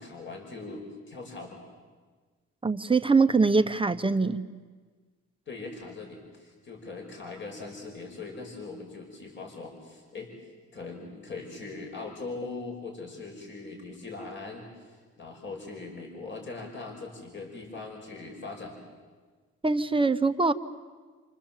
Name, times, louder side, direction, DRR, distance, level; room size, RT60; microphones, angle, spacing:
voice 1, 0.0-1.6 5.5-10.3 10.7-18.8, left 3 dB, 40° left, 2 dB, 5.7 m, -41 dB
voice 2, 2.6-4.4 19.6-20.5, right 4 dB, 15° right, 8 dB, 1.1 m, -23 dB
29.0 x 27.0 x 7.5 m, 1.4 s
cardioid pair, 90°, 30 cm